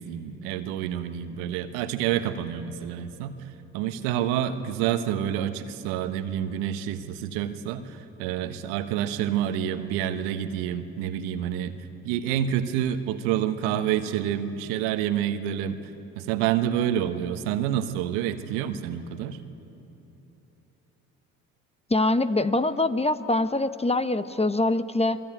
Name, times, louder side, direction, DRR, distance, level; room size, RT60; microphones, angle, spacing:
voice 1, 0.0-3.3 3.7-11.8 12.0-15.8 16.2-19.4, right 10 dB, 75° right, 9 dB, 1.4 m, -28 dB
voice 2, 21.9-25.2, left 2 dB, 15° left, 12 dB, 1.0 m, -24 dB
27.5 x 21.5 x 9.1 m, 3.0 s
hypercardioid pair, 55°, 44 cm